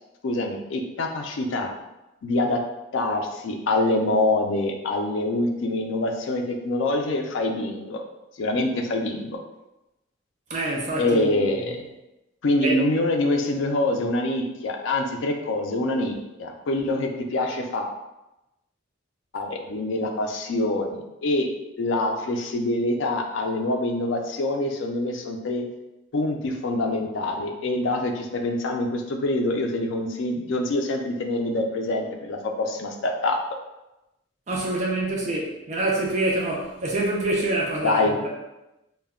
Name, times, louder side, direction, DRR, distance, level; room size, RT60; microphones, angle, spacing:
voice 1, 0.2-1.7 2.2-2.6 2.9-8.0 8.4-9.4 11.0-11.8 12.4-17.9 19.3-21.5 21.8-25.6 26.1-33.4 37.8-38.1, left 2 dB, 70° left, 3 dB, 0.4 m, -25 dB
voice 2, 10.5-11.8 12.6-12.8 34.5-38.3, right 2 dB, 35° right, -2 dB, 0.4 m, -26 dB
2.1 x 2.1 x 3.5 m, 0.96 s
head